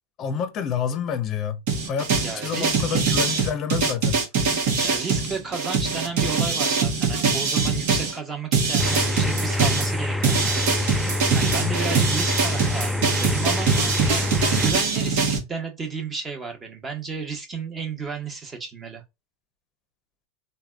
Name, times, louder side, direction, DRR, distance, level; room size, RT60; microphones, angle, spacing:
voice 1, 0.2-4.2 11.5-11.8, left 8 dB, 40° left, 0.6 m, -29 dB
sound 1, 1.7-8.1 8.5-15.4, right 5 dB, 65° right, 1.0 m, -23 dB
voice 2, 2.2-3.1 4.8-13.7 14.5-19.0, right 5 dB, 20° right, 1.0 m, -33 dB
sound 2, 8.8-14.7, left 2 dB, ahead, 0.3 m, -26 dB
3.3 x 2.2 x 2.3 m
hypercardioid pair, 100°, 0 cm